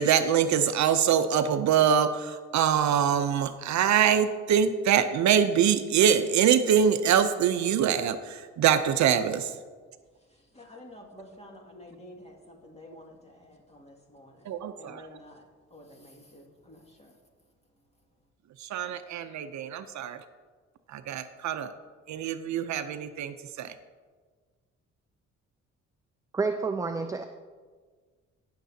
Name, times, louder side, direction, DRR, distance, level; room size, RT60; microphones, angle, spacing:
voice 1, 0.0-9.5 14.5-15.0 18.6-20.2 20.9-21.7 22.1-23.7, right 8 dB, 65° right, 10 dB, 0.6 m, -24 dB
voice 2, 10.5-15.4 15.7-17.1, left 1 dB, 20° left, 1 dB, 2.1 m, -50 dB
voice 3, 26.3-27.2, right 4 dB, 10° right, 8 dB, 0.4 m, -29 dB
19.0 x 6.7 x 2.8 m, 1.5 s
cardioid pair, 90°, 30 cm